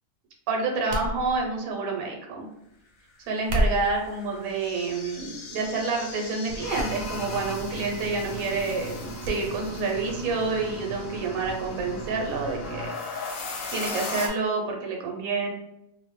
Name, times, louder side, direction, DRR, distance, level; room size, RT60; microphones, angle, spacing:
voice 1, 0.5-2.5 3.3-13.0 13.7-15.5, right 3 dB, 80° right, 1 dB, 1.0 m, -28 dB
sound 1, 0.9-1.7 3.3-4.1 4.8-5.2 5.6-5.8 6.8-6.9 7.2-7.3 9.2-9.4 9.8-9.9, equal, 65° right, 0.6 m, -29 dB
sound 2, 3.4-14.3, left 3 dB, 70° left, 0.5 m, -38 dB
sound 3, 6.5-12.9, right 2 dB, 90° left, 1.1 m, -39 dB
2.6 x 2.0 x 3.0 m, 0.85 s
omnidirectional pair, 1.5 m